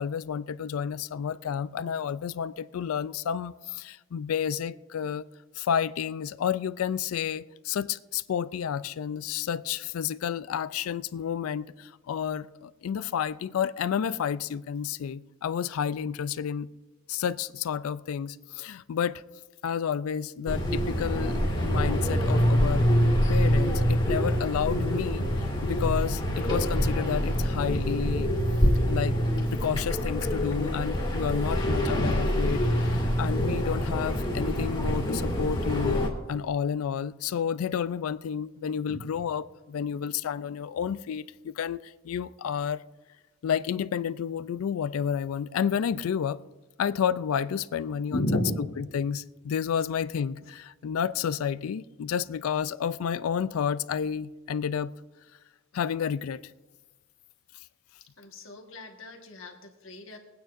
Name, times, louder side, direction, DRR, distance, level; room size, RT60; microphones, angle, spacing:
voice 1, 0.0-5.3 5.6-16.7 17.1-19.2 19.6-22.9 23.3-28.3 28.9-29.2 29.5-36.0 36.3-42.8 43.4-46.4 46.8-48.3 48.8-54.9 55.7-56.4, left 8 dB, 90° left, 0.4 m, -30 dB
sound 1, 20.5-36.1, equal, 25° left, 2.1 m, -25 dB
voice 2, 48.1-48.6 58.2-60.2, left 1 dB, 65° left, 1.5 m, -33 dB
22.5 x 9.2 x 2.6 m
head